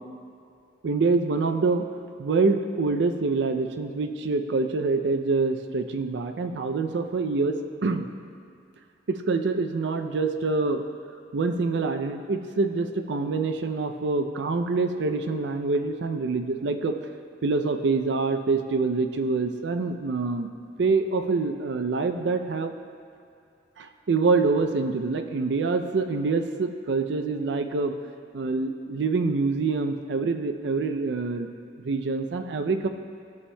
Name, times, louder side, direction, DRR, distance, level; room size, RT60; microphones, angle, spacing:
voice 1, 0.8-1.9 2.2-8.1 9.1-10.8 11.3-16.9 17.4-20.5 20.8-22.7 23.8-27.9 28.3-31.5 31.8-32.9, right 3 dB, 65° right, 7 dB, 0.5 m, -25 dB
12.5 x 7.0 x 2.2 m, 2.5 s
head